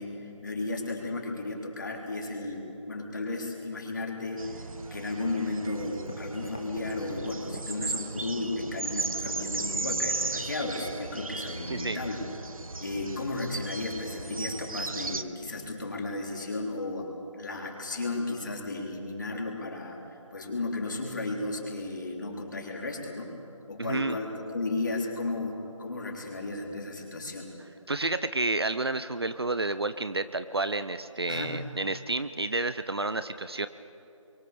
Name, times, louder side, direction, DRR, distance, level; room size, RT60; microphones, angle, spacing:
voice 1, 0.0-12.2 12.8-17.1 17.4-23.4 23.7-27.5 31.3-31.6, left 2 dB, 35° left, 0 dB, 3.7 m, -34 dB
sound 1, 4.4-15.2, right 3 dB, 90° right, 1.3 m, -36 dB
sound 2, 5.9-10.6, left 1 dB, 10° left, 0.7 m, -41 dB
voice 2, 11.7-12.0 23.8-24.2 27.9-33.7, right 2 dB, 50° right, 12 dB, 0.8 m, -30 dB
27.5 x 23.5 x 7.0 m, 2.8 s
figure-of-eight pair, 180°, 17 cm